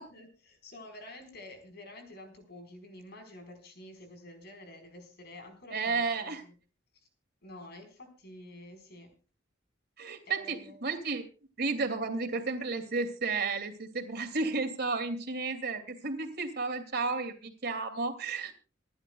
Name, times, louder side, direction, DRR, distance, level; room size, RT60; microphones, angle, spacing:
voice 1, 0.0-6.6 7.4-9.2 10.3-10.8, left 1 dB, 60° left, 6 dB, 4.5 m, -49 dB
voice 2, 5.7-6.4 10.0-11.2 11.6-18.5, right 4 dB, 60° right, 7 dB, 2.6 m, -32 dB
27.0 x 11.5 x 2.3 m, 0.34 s
head